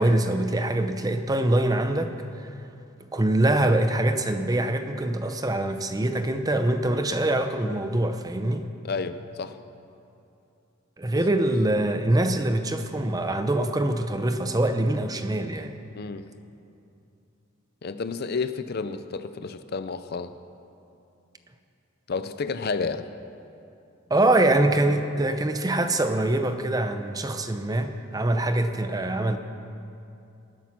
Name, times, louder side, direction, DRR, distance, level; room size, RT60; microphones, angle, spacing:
voice 1, 0.0-2.5 3.1-8.7 11.0-15.7 24.1-29.4, right 1 dB, 20° right, 8 dB, 0.7 m, -24 dB
voice 2, 8.8-9.6 11.1-11.2 16.0-16.3 17.8-20.3 22.1-23.1, left 4 dB, 50° left, 11 dB, 0.5 m, -31 dB
19.0 x 10.5 x 6.1 m, 2.7 s
head